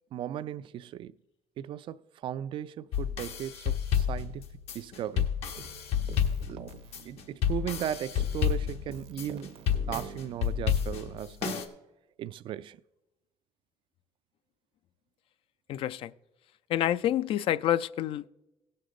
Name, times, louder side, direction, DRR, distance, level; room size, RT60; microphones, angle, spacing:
voice 1, 0.1-1.1 1.6-4.5 4.7-5.3 6.5-6.6 7.0-9.6 9.9-11.7 12.2-12.8, right 10 dB, 55° right, 0.4 m, -37 dB
sound 1, 2.9-11.7, left 8 dB, 75° left, 1.2 m, -30 dB
Keyboard (musical), 5.6-7.8 8.2-10.9, right 7 dB, 70° right, 0.8 m, -47 dB
voice 2, 15.7-16.1 16.7-18.3, left 12 dB, 60° left, 0.4 m, -28 dB
16.5 x 6.6 x 3.8 m
cardioid pair, 145°, 10 cm